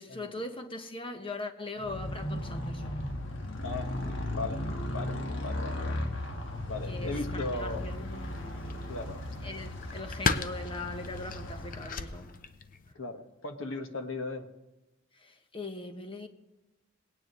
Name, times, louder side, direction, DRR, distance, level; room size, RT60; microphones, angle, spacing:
voice 1, 0.0-3.0 6.9-8.6 9.4-12.3 15.1-16.3, left 2 dB, 25° left, 6 dB, 1.1 m, -40 dB
Motorcycle, 1.8-12.4, left 1 dB, 70° left, 1.4 m, -36 dB
voice 2, 4.3-6.1 6.6-7.9 8.9-9.2 12.9-14.5, left 3 dB, 90° left, 5 dB, 1.5 m, -37 dB
sound 1, 7.6-12.9, left 4 dB, 45° left, 0.6 m, -37 dB
19.5 x 9.6 x 3.1 m, 1.0 s
head